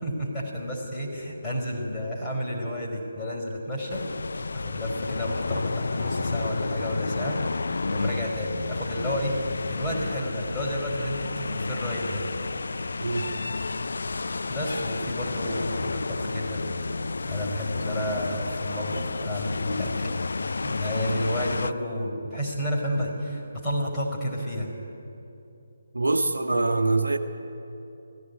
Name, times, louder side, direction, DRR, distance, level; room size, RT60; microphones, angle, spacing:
voice 1, 0.0-4.0 4.5-7.4 7.9-12.2 14.5-16.7 17.2-19.9 20.6-24.7, equal, 10° left, -6 dB, 4.7 m, -31 dB
sound 1, 3.9-21.7, left 3 dB, 60° left, 0.5 m, -31 dB
voice 2, 25.9-27.2, right 2 dB, 70° right, 5 dB, 1.2 m, -24 dB
17.5 x 15.5 x 9.6 m, 2.9 s
figure-of-eight pair, 145°, 0 cm